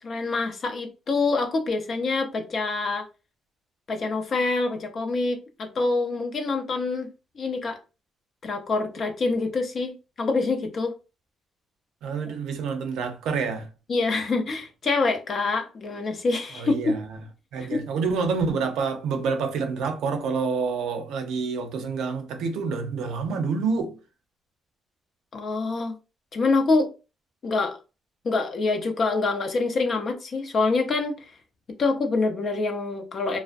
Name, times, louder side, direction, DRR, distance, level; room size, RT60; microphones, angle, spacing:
voice 1, 0.0-3.1 3.9-7.1 7.4-7.8 8.4-10.9 13.9-16.9 17.6-17.8 25.3-26.0 26.3-26.9 27.4-27.8 28.2-31.2 31.8-33.4, left 3 dB, 50° left, 0.5 m, -26 dB
voice 2, 12.0-13.7 16.6-17.1 17.5-24.0, right 5 dB, 85° right, 0.5 m, -27 dB
2.4 x 2.0 x 2.5 m
cardioid pair, 90°, 0 cm